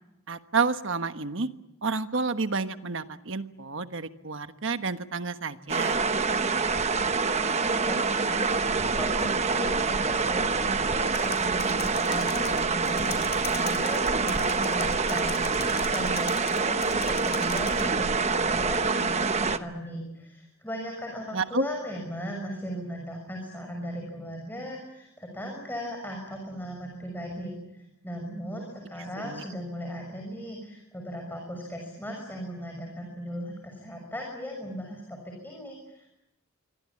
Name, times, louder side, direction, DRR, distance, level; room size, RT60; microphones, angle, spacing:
voice 1, 0.3-1.5 1.8-6.0 21.3-21.7 29.2-29.4, right 4 dB, 60° right, 9 dB, 1.3 m, -30 dB
sound 1, 5.7-19.6, right 4 dB, 30° right, 1.0 m, -26 dB
voice 2, 7.0-8.5 8.8-36.1, equal, 10° left, 1 dB, 6.5 m, -37 dB
Computer keyboard, 11.1-17.9, left 8 dB, 50° left, 5.8 m, -41 dB
27.0 x 24.0 x 8.7 m, 0.90 s
head